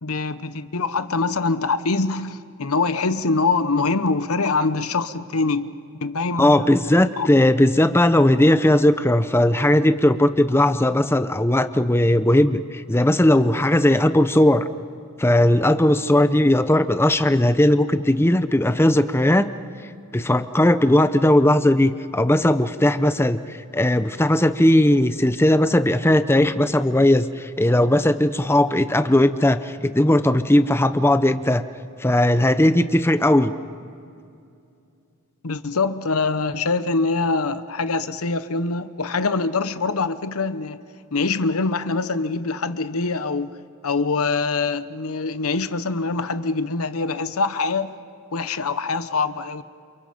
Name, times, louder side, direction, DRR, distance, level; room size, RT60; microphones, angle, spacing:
voice 1, 0.0-5.7 6.0-7.3 35.4-40.8 41.1-43.5 43.8-47.9 48.3-49.6, left 3 dB, 90° left, 12 dB, 0.9 m, -24 dB
voice 2, 6.4-14.7 15.2-19.5 20.1-31.6 32.0-33.5, left 1 dB, 10° left, 11 dB, 0.7 m, -18 dB
29.0 x 28.5 x 5.2 m, 2.5 s
head